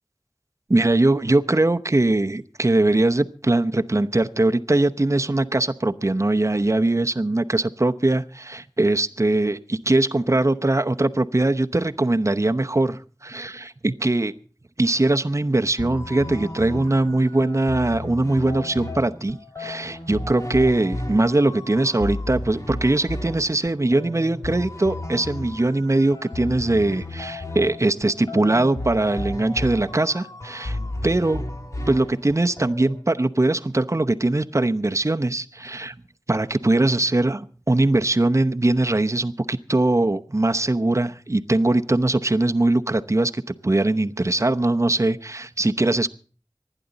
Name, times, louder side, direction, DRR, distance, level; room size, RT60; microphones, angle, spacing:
voice 1, 0.7-14.3 14.8-31.4 31.9-36.0 36.3-46.1, right 2 dB, 40° right, 8 dB, 0.8 m, -21 dB
sound 1, 15.8-33.1, left 1 dB, 45° left, 1.9 m, -33 dB
26.0 x 10.0 x 4.0 m, 0.42 s
wide cardioid pair, 45°, 8 cm